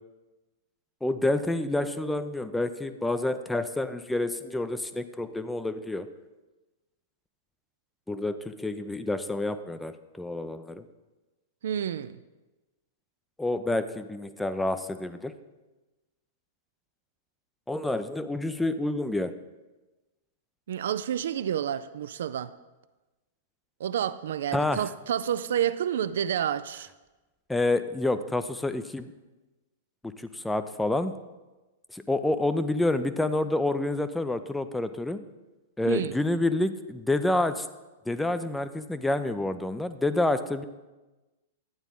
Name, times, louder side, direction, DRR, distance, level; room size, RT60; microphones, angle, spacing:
voice 1, 1.0-6.1 8.1-10.8 13.4-15.3 17.7-19.3 24.5-24.8 27.5-29.1 30.2-31.2 31.9-35.2 35.8-37.7 38.1-40.6, left 2 dB, 5° left, 11 dB, 0.5 m, -28 dB
voice 2, 11.6-12.2 20.7-22.5 23.8-26.9 35.9-36.1, right 9 dB, 60° right, 14 dB, 0.3 m, -29 dB
11.5 x 8.9 x 3.7 m, 1.1 s
figure-of-eight pair, 100°, 0 cm